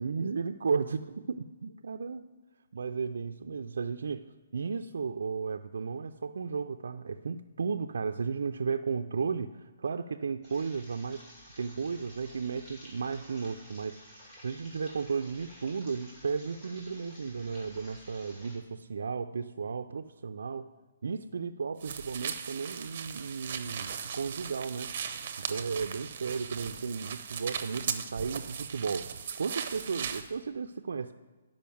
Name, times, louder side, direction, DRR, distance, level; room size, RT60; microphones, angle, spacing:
voice 1, 0.0-2.3 2.7-11.2 11.6-14.0 14.4-20.7 21.0-24.9 25.5-31.1, right 5 dB, 70° right, 6 dB, 0.4 m, -34 dB
sound 1, 10.4-18.6, equal, 20° left, 2.7 m, -53 dB
sound 2, 21.8-30.3, right 7 dB, 35° right, 0.7 m, -38 dB
10.5 x 5.2 x 7.0 m, 1.3 s
hypercardioid pair, 175°, 0 cm